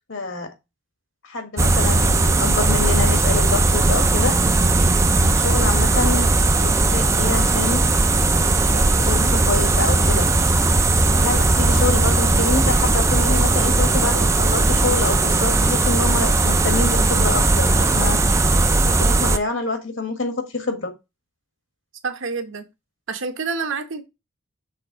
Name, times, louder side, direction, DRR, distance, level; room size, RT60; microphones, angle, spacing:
voice 1, 0.1-0.5 1.2-4.4 5.2-7.8 8.6-10.3 11.1-18.2 18.8-20.9, left 3 dB, 60° left, 1.4 m, -26 dB
sound 1, 1.6-19.4, right 2 dB, 15° right, 0.3 m, -18 dB
voice 2, 22.0-22.7 23.1-24.0, right 4 dB, 65° right, 0.9 m, -28 dB
6.6 x 3.5 x 4.6 m
head